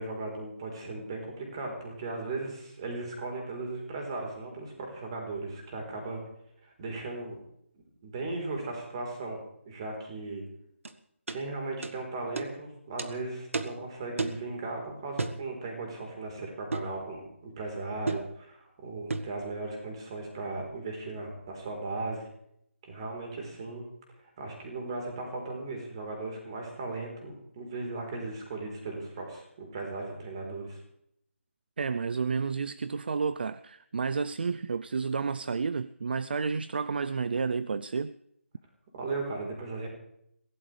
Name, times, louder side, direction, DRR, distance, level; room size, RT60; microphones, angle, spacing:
voice 1, 0.0-6.2 6.6-7.4 7.7-10.4 11.3-22.3 22.8-23.8 24.4-30.8 38.9-39.9, right 3 dB, 25° right, 3.9 m, -37 dB
sound 1, 10.8-10.9 11.3-11.4 11.8-12.0 12.4-12.5 13.0-13.1 13.5-13.8 14.2-14.4 15.2-15.4 16.7-16.9 18.1-18.3 19.1-19.3, right 3 dB, 75° right, 1.5 m, -32 dB
voice 2, 31.8-38.1, right 5 dB, 50° right, 0.5 m, -31 dB
23.5 x 16.5 x 3.3 m
hypercardioid pair, 175°, 7 cm